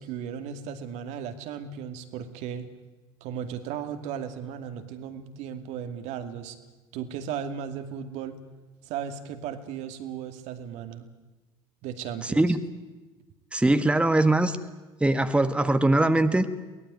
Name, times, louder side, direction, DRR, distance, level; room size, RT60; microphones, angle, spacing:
voice 1, 0.0-2.7 3.2-6.6 6.9-8.4 8.9-11.0 11.8-12.6, right 8 dB, 60° right, 8 dB, 2.4 m, -36 dB
voice 2, 12.2-12.6 13.5-14.6 15.0-16.6, right 2 dB, 10° right, 10 dB, 1.6 m, -22 dB
23.0 x 18.5 x 9.4 m, 1.2 s
hypercardioid pair, 65°, 13 cm